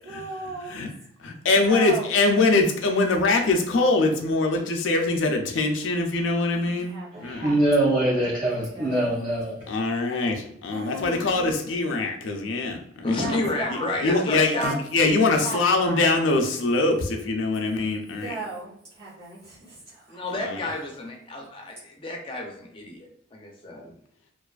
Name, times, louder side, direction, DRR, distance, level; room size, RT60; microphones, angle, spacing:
voice 1, 0.0-0.8 1.5-2.1 6.5-7.4 8.4-9.1 10.7-11.4 13.1-14.2 14.5-14.8 15.4-16.1 17.7-20.2, right 2 dB, 80° right, -10 dB, 1.2 m, -37 dB
voice 2, 1.2-7.5 9.7-13.4 13.7-18.3 20.4-20.6, left 3 dB, 80° left, 3 dB, 0.4 m, -23 dB
voice 3, 7.1-9.6, right 1 dB, 40° right, -6 dB, 0.6 m, -23 dB
voice 4, 13.0-14.8 20.1-23.9, left 2 dB, 25° left, 1 dB, 0.5 m, -31 dB
2.5 x 2.3 x 2.3 m, 0.69 s
head